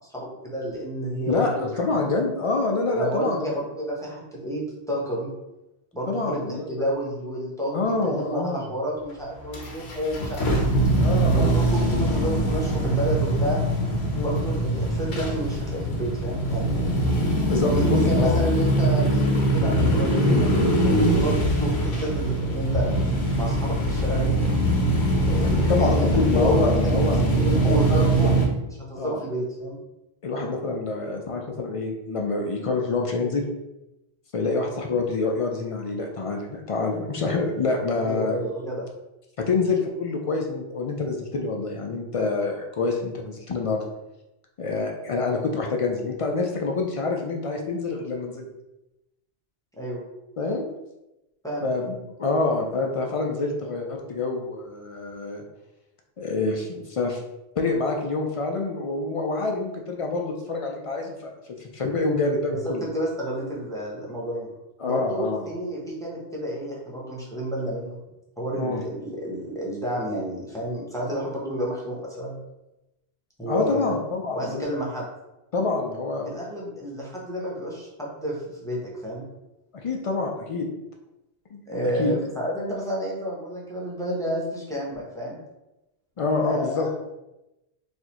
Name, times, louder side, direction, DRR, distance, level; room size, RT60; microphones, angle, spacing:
voice 1, 0.0-1.8 2.9-5.3 5.9-10.5 11.3-13.6 14.2-17.1 17.7-20.5 20.8-22.9 23.4-24.4 25.2-26.0 26.3-26.9 27.2-28.3 28.9-29.8 38.0-38.9 49.8-50.0 51.4-51.7 62.5-64.5 64.8-68.0 68.4-72.4 73.4-74.0 74.3-75.0 76.3-79.3 81.7-85.4 86.4-86.9, equal, 5° left, -5 dB, 0.8 m, -30 dB
voice 2, 1.3-3.5 6.1-6.7 7.7-8.7 11.0-11.6 14.1-14.4 17.5-18.3 25.4-27.2 27.5-28.3 29.0-29.2 30.2-33.4 34.3-38.4 39.4-43.8 44.6-48.5 50.4-50.6 51.6-55.4 56.2-57.2 57.6-61.3 61.6-62.8 64.8-65.5 68.6-68.8 73.5-74.6 75.5-76.3 79.8-80.7 81.5-81.6 82.0-82.1 86.2-86.9, left 3 dB, 60° left, 1 dB, 0.3 m, -26 dB
sound 1, 9.5-28.5, right 1 dB, 80° left, 1.0 m, -22 dB
4.1 x 2.5 x 2.9 m, 0.94 s
omnidirectional pair, 1.1 m